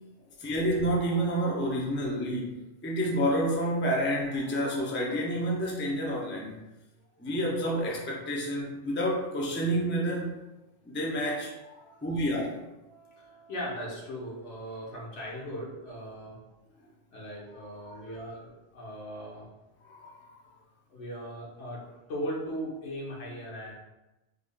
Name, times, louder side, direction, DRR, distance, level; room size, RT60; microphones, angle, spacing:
voice 1, 0.4-6.6 7.2-10.4 10.8-12.6 17.8-18.0 19.8-20.4, equal, 20° left, -2 dB, 0.3 m, -29 dB
voice 2, 12.8-16.4 17.1-19.5 20.9-23.7, equal, 85° left, -4 dB, 1.3 m, -39 dB
3.5 x 3.5 x 2.2 m, 1.0 s
omnidirectional pair, 1.2 m